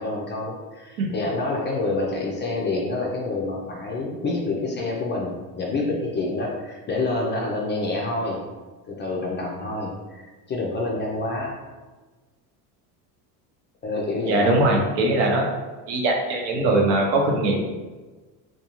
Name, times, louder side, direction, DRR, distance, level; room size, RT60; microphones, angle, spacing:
voice 1, 0.0-8.4 8.9-11.5 13.8-14.6, left 2 dB, 25° left, -2 dB, 0.3 m, -27 dB
voice 2, 14.3-15.4 15.9-17.6, right 2 dB, 75° right, 0 dB, 0.8 m, -21 dB
2.5 x 2.3 x 2.9 m, 1.3 s
supercardioid pair, 100°, 48 cm